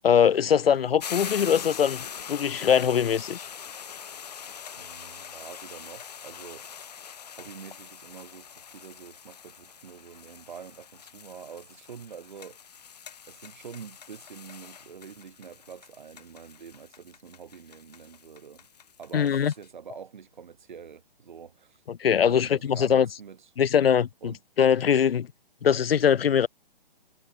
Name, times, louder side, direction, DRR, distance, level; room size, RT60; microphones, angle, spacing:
voice 1, 0.0-2.0 2.3-3.5 19.1-19.5 21.9-23.1 23.6-25.3 25.6-26.5, left 8 dB, 80° left, 0.9 m, -22 dB
sound 1, 1.0-19.7, left 7 dB, 45° left, 1.5 m, -43 dB
voice 2, 4.8-6.7 7.4-12.6 13.3-18.7 19.0-21.8 22.2-23.5 24.2-24.4, right 7 dB, 50° right, 7.1 m, -46 dB
hypercardioid pair, 180°, 29 cm